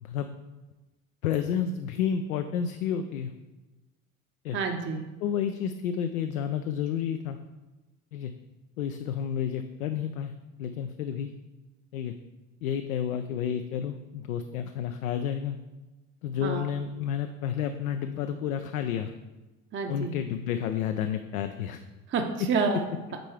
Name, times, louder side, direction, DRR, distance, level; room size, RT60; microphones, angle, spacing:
voice 1, 1.2-3.3 4.4-4.6 5.2-7.4 8.1-8.3 8.8-10.3 10.6-11.3 11.9-12.1 12.6-15.6 16.2-19.1 19.9-21.8, left 8 dB, 80° left, 8 dB, 0.5 m, -30 dB
voice 2, 4.5-5.0 16.4-16.6 19.7-20.1 22.1-22.9, right 4 dB, 30° right, 4 dB, 0.7 m, -28 dB
8.9 x 4.5 x 3.3 m, 1.1 s
hypercardioid pair, 70°, 41 cm